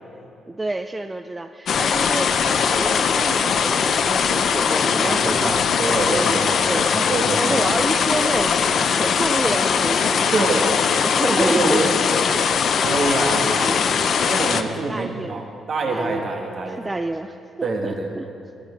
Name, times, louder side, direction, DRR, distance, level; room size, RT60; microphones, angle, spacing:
voice 1, 0.5-5.6 6.1-7.1 7.4-11.8 12.1-12.4 12.8-13.2 13.6-14.2 14.5-15.4 15.9-16.4 16.7-18.3, right 2 dB, 15° right, 8 dB, 0.4 m, -29 dB
sound 1, 1.7-14.6, left 6 dB, 60° left, 0.6 m, -20 dB
voice 2, 4.8-7.7 10.3-10.7 11.3-12.0 12.8-16.8 17.6-18.1, right 3 dB, 50° right, 1 dB, 2.0 m, -26 dB
14.5 x 13.5 x 4.7 m, 2.7 s
cardioid pair, 90°, 0 cm